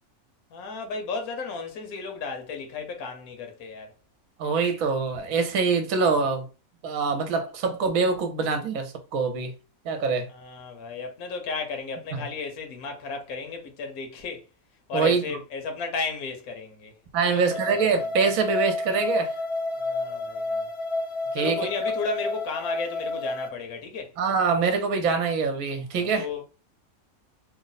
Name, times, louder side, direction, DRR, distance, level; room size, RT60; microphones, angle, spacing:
voice 1, 0.5-3.9 10.3-14.4 14.9-16.9 17.3-17.4 19.8-20.7 21.3-24.1 25.9-26.4, left 4 dB, 90° left, 1.3 m, -34 dB
voice 2, 4.4-6.5 6.8-9.5 9.8-10.3 12.1-12.2 14.9-15.2 17.1-19.3 21.3-21.6 24.2-26.3, right 5 dB, 75° right, 1.1 m, -24 dB
sound 1, 17.5-23.5, left 2 dB, 50° left, 1.2 m, -30 dB
3.1 x 2.0 x 3.9 m
omnidirectional pair, 1.5 m